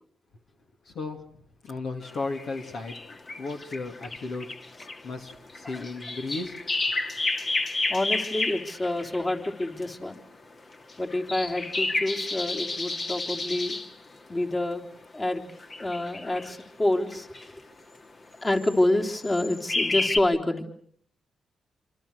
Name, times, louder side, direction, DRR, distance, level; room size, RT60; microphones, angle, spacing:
voice 1, 0.8-1.2 1.6-2.9 3.4-4.5 5.0-6.6, left 3 dB, 70° left, 3 dB, 2.6 m, -34 dB
sound 1, 2.0-9.8 10.7-13.9 15.3-16.6 17.1-17.5 18.5-18.8 19.2-20.2, left 2 dB, 50° left, 2.5 m, -31 dB
voice 2, 7.9-10.2 11.0-13.8 14.3-14.8 15.1-15.4 15.8-17.3 18.4-20.7, left 1 dB, 30° left, 2 dB, 3.7 m, -27 dB
26.5 x 26.0 x 6.6 m, 0.62 s
supercardioid pair, 50°, 0 cm